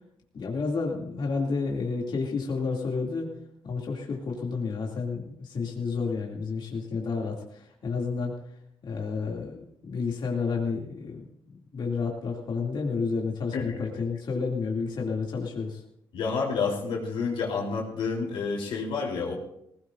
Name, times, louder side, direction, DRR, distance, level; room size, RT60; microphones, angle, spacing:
voice 1, 0.3-3.3 3.6-8.3 8.8-15.8, left 4 dB, 60° left, -1 dB, 2.6 m, -30 dB
voice 2, 13.5-13.8 16.1-19.4, left 4 dB, 90° left, -2 dB, 3.4 m, -29 dB
19.5 x 17.5 x 2.6 m, 0.74 s
cardioid pair, 90°, 9 cm